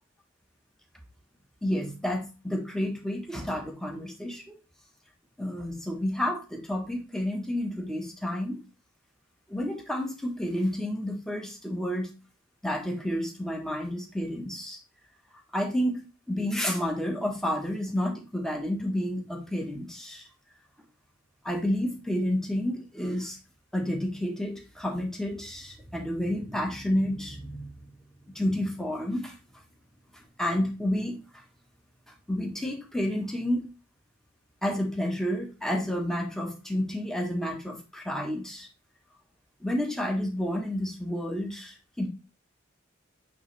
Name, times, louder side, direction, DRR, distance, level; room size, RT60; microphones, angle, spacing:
voice 1, 1.6-4.6 5.4-8.6 9.5-12.1 12.6-14.8 15.5-20.3 21.4-23.4 23.7-27.7 28.3-29.3 30.4-31.2 32.3-33.7 34.6-38.7 39.6-42.1, left 1 dB, 5° left, 1 dB, 1.1 m, -30 dB
8.6 x 3.4 x 3.2 m, 0.30 s
head